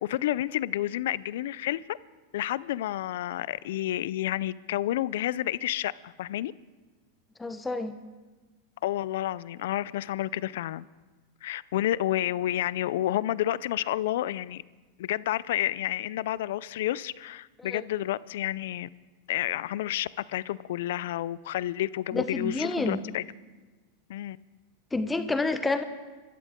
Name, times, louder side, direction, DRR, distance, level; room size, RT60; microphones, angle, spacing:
voice 1, 0.0-2.0 2.3-6.5 8.8-10.8 11.4-14.6 15.0-18.9 19.3-23.2 24.1-24.4, left 13 dB, 70° left, 20 dB, 0.4 m, -30 dB
voice 2, 7.4-7.9 17.6-17.8 22.1-23.0 24.9-25.8, left 3 dB, 10° left, 9 dB, 1.0 m, -29 dB
26.0 x 13.5 x 3.7 m, 1.3 s
hypercardioid pair, 115°, 0 cm